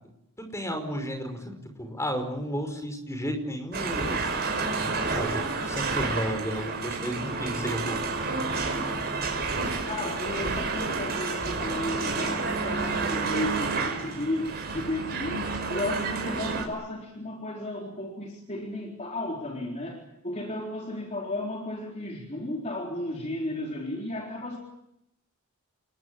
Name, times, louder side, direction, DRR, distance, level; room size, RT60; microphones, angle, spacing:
voice 1, 0.5-4.2 4.8-8.0, equal, 15° left, 5 dB, 5.4 m, -33 dB
sound 1, 3.7-16.6, right 4 dB, 45° right, 5.7 m, -30 dB
voice 2, 9.9-24.6, left 1 dB, 30° left, 0 dB, 3.8 m, -34 dB
28.0 x 21.5 x 8.8 m, 0.80 s
head